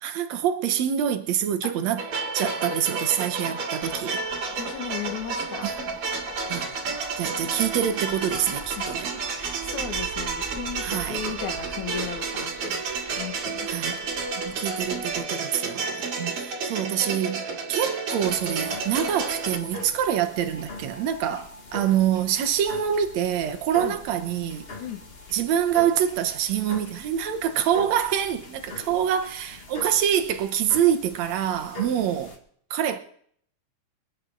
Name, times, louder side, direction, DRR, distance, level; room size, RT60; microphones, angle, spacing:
voice 1, 0.0-2.0 2.3-4.2 5.6-6.0 6.5-6.7 7.2-9.1 10.8-11.2 13.7-13.9 14.4-24.7 25.3-32.4 32.7-33.0, right 9 dB, 65° right, 2.1 m, -26 dB
sound 1, 2.0-19.6, right 4 dB, 50° right, 2.8 m, -31 dB
sound 2, 3.8-15.2, right 4 dB, 10° right, 2.9 m, -47 dB
voice 2, 4.5-5.7 8.8-13.7 23.8-23.9 24.8-25.0 28.8-29.0, left 8 dB, 70° left, 3.1 m, -36 dB
sound 3, 18.2-32.4, left 1 dB, 35° left, 1.0 m, -42 dB
27.0 x 9.5 x 3.9 m
omnidirectional pair, 3.5 m